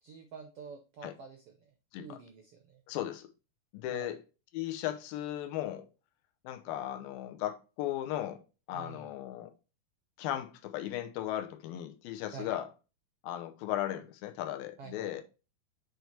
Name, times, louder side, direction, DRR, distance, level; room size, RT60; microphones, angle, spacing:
voice 1, 0.0-2.8 3.9-4.1 8.7-9.1 12.3-12.6 14.8-15.2, right 5 dB, 90° right, 1.3 m, -48 dB
voice 2, 2.9-3.3 3.7-4.2 4.5-5.9 6.4-9.5 10.2-12.7 13.2-15.2, left 12 dB, 90° left, 2.5 m, -36 dB
7.9 x 3.3 x 4.3 m
omnidirectional pair, 3.9 m